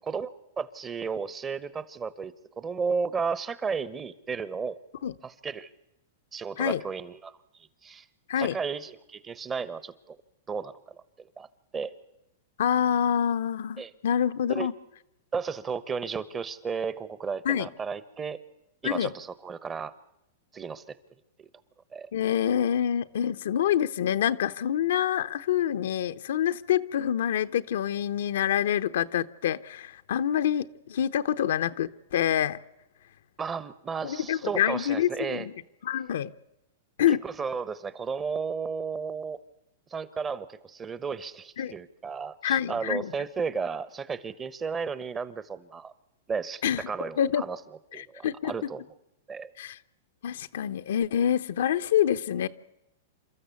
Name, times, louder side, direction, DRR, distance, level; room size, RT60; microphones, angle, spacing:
voice 1, 0.1-4.8 5.2-5.7 6.3-7.3 7.8-8.1 8.4-10.2 10.5-11.0 11.4-11.5 11.7-11.9 13.8-13.9 14.5-14.7 15.3-18.4 18.8-19.9 20.5-21.0 21.4-21.5 21.9-22.1 33.4-35.5 37.1-39.4 39.9-45.9 46.3-47.6 47.9-48.8 49.3-49.5, right 5 dB, 20° right, 17 dB, 1.0 m, -33 dB
voice 2, 12.6-14.7 17.4-17.7 18.8-19.1 22.1-32.6 34.0-35.5 35.8-36.3 37.0-37.2 41.6-41.7 42.4-43.1 46.6-46.8 47.2-47.4 47.9-48.7 49.6-49.8 50.2-52.5, left 10 dB, 75° left, 9 dB, 0.8 m, -26 dB
28.5 x 13.5 x 8.3 m, 0.88 s
hypercardioid pair, 130°, 0 cm